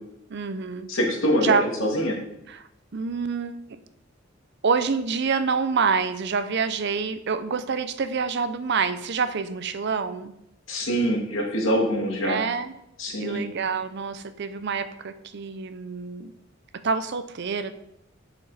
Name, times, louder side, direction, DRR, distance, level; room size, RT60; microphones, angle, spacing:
voice 1, 0.3-0.9 1.4-1.6 2.5-2.7 2.9-3.8 4.6-10.3 12.2-12.7 13.2-16.3 16.7-17.7, right 5 dB, 60° right, 12 dB, 0.6 m, -27 dB
voice 2, 0.9-2.2 10.7-12.4 13.0-13.5, equal, 80° left, 0 dB, 2.0 m, -24 dB
8.4 x 6.2 x 4.1 m, 0.81 s
head